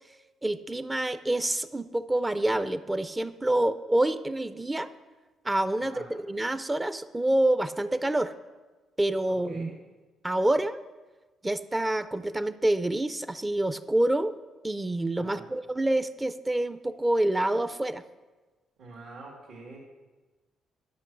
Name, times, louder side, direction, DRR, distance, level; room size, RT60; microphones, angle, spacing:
voice 1, 0.4-4.9 5.4-8.3 9.0-9.7 10.2-10.8 11.4-14.3 14.6-18.0, right 1 dB, 15° right, 13 dB, 0.4 m, -27 dB
voice 2, 18.8-19.8, right 3 dB, 75° right, -4 dB, 1.9 m, -45 dB
11.5 x 5.5 x 6.0 m, 1.2 s
cardioid pair, 90°, 0 cm